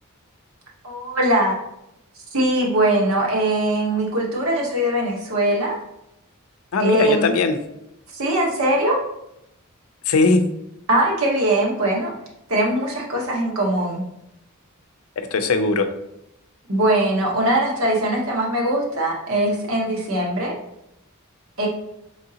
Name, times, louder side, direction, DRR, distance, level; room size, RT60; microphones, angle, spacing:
voice 1, 0.8-1.6 2.3-5.8 6.8-7.3 8.1-9.0 10.9-12.1 12.5-14.0 16.7-20.5 21.6-21.7, right 1 dB, 75° right, -1 dB, 1.0 m, -21 dB
voice 2, 6.7-7.6 10.1-10.4 15.2-15.9, left 3 dB, 80° left, 7 dB, 0.5 m, -19 dB
3.7 x 3.5 x 2.8 m, 0.82 s
head